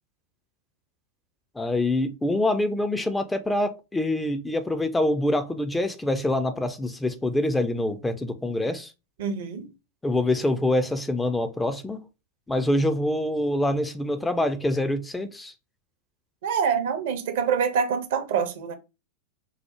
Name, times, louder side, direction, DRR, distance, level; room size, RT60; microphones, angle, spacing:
voice 1, 1.6-8.9 10.0-12.0 12.5-15.5, left 1 dB, 10° left, 0.4 m, -25 dB
voice 2, 9.2-9.7 16.4-18.7, right 7 dB, 55° right, 0.6 m, -25 dB
4.7 x 2.0 x 2.8 m
figure-of-eight pair, 90°, 0 cm